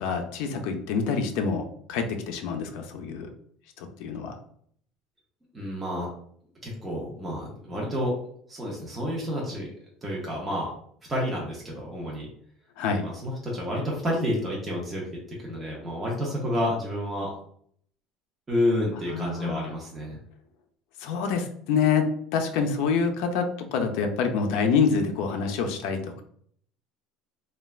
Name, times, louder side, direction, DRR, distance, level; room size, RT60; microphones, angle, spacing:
voice 1, 0.0-3.3 3.8-4.4 12.8-13.1 19.1-19.7 21.0-26.2, left 5 dB, 65° left, 4 dB, 0.4 m, -26 dB
voice 2, 5.5-6.1 6.6-8.1 8.5-9.7 10.0-10.7 11.1-12.3 13.0-17.3 18.5-20.2, left 1 dB, 15° right, -4 dB, 0.7 m, -29 dB
3.1 x 2.2 x 2.3 m, 0.62 s
cardioid pair, 165°, 0 cm